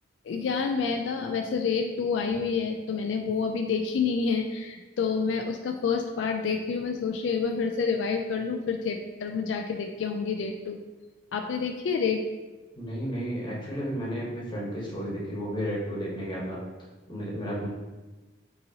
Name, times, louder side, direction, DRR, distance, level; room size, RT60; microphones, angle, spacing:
voice 1, 0.2-10.8 11.3-12.2, left 5 dB, 75° left, 4 dB, 0.3 m, -28 dB
voice 2, 12.8-16.6 17.1-17.7, equal, 25° left, -5 dB, 1.1 m, -32 dB
5.4 x 2.9 x 2.7 m, 1.2 s
head